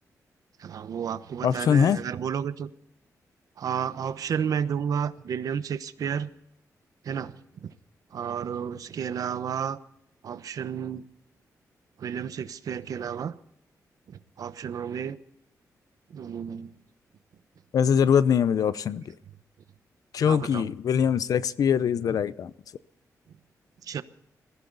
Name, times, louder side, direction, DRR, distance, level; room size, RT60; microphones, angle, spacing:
voice 1, 0.6-2.7 3.6-6.3 7.0-7.8 8.1-9.8 10.2-11.0 12.0-13.4 14.1-15.2 16.1-16.7 20.2-20.7 23.8-24.0, right 8 dB, 70° right, 1.0 m, -32 dB
voice 2, 1.4-2.0 17.7-19.1 20.1-22.5, left 7 dB, 70° left, 0.7 m, -23 dB
22.0 x 15.0 x 4.0 m
wide cardioid pair, 130°, 6 cm